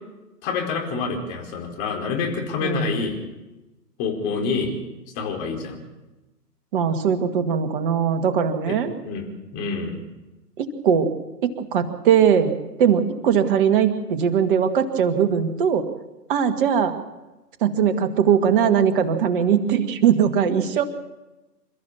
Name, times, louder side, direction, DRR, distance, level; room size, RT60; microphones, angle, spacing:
voice 1, 0.4-3.2 4.0-4.7 5.1-5.8 8.7-8.8 9.0-9.3 9.5-10.0, left 5 dB, 25° left, 1 dB, 4.8 m, -27 dB
voice 2, 2.6-2.9 6.7-8.9 10.6-11.1 11.4-15.8 16.3-16.9 17.6-20.8, right 8 dB, 30° right, 7 dB, 2.0 m, -20 dB
28.5 x 14.0 x 7.1 m, 1.1 s
figure-of-eight pair, 125°, 49 cm